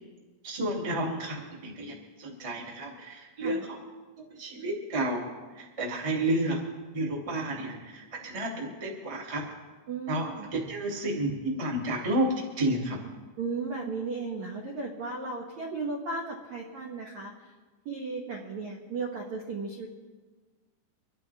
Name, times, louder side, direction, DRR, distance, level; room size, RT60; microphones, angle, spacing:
voice 1, 0.4-3.8 4.2-5.3 5.5-6.6 6.9-9.5 10.1-13.0, right 1 dB, 20° right, -3 dB, 0.9 m, -31 dB
voice 2, 9.9-10.5 13.4-17.3 17.8-19.9, right 4 dB, 75° right, -1 dB, 1.6 m, -35 dB
25.5 x 11.5 x 3.5 m, 1.3 s
omnidirectional pair, 5.6 m